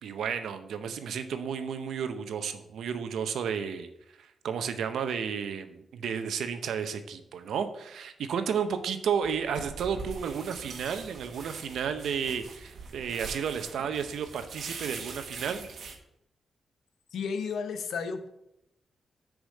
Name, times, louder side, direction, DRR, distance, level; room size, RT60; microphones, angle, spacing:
voice 1, 0.0-3.9 4.2-15.7, right 7 dB, 90° right, 9 dB, 0.7 m, -32 dB
sound 1, 9.2-16.0, right 4 dB, 70° right, 1.2 m, -43 dB
voice 2, 17.1-18.3, left 5 dB, 85° left, 8 dB, 0.8 m, -33 dB
6.4 x 5.0 x 6.2 m, 0.81 s
cardioid pair, 95°, 0 cm